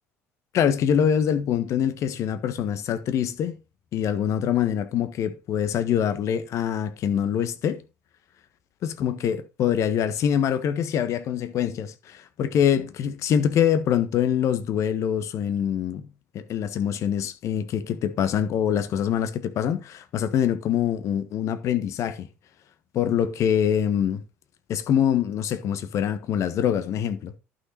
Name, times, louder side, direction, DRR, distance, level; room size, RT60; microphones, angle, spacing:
voice 1, 0.5-3.6 3.9-7.8 8.8-16.1 16.3-22.3 22.9-24.2 24.7-27.3, left 9 dB, 50° left, 1.4 m, -24 dB
11.5 x 6.1 x 4.2 m
hypercardioid pair, 65°, 6 cm